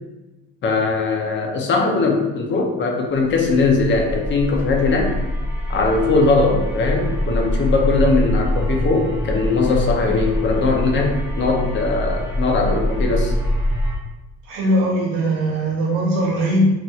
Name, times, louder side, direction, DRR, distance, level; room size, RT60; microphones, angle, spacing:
voice 1, 0.6-5.1 5.7-13.3, left 3 dB, 35° left, 2 dB, 0.5 m, -20 dB
sound 1, 3.4-13.9, equal, 5° right, 0.6 m, -24 dB
voice 2, 14.5-16.7, right 1 dB, 85° right, -3 dB, 1.0 m, -20 dB
3.0 x 2.8 x 2.3 m, 1.1 s
cardioid pair, 125°, 32 cm